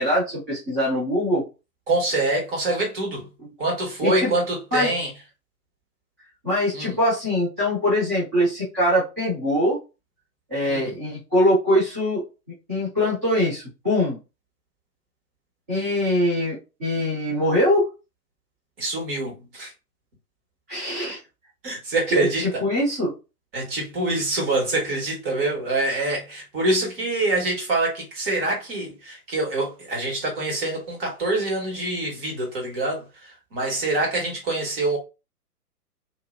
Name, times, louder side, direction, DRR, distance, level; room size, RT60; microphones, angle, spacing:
voice 1, 0.0-1.4 4.0-4.3 4.7-4.9 6.4-9.8 10.5-12.2 12.7-14.2 15.7-17.9 20.7-21.2 22.1-23.1, left 1 dB, 10° right, 0.4 m, -22 dB
voice 2, 1.9-3.3 3.6-5.1 6.7-7.0 10.7-11.0 18.8-19.7 21.6-22.6 23.5-35.0, right 2 dB, 35° right, 1.5 m, -25 dB
2.8 x 2.6 x 2.3 m
figure-of-eight pair, 125°, 48 cm